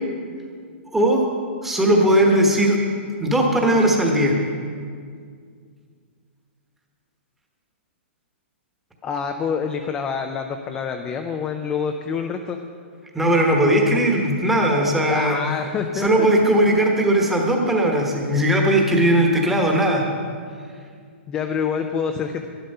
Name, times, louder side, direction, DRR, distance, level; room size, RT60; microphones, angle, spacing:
voice 1, 0.9-1.3 1.6-2.8 3.2-4.4 13.1-15.4 16.0-20.0, right 1 dB, 5° right, 0 dB, 1.1 m, -18 dB
voice 2, 9.0-12.6 15.1-16.3 21.3-22.5, left 6 dB, 10° left, 5 dB, 0.4 m, -26 dB
11.5 x 11.5 x 5.4 m, 2.1 s
hypercardioid pair, 170°, 7 cm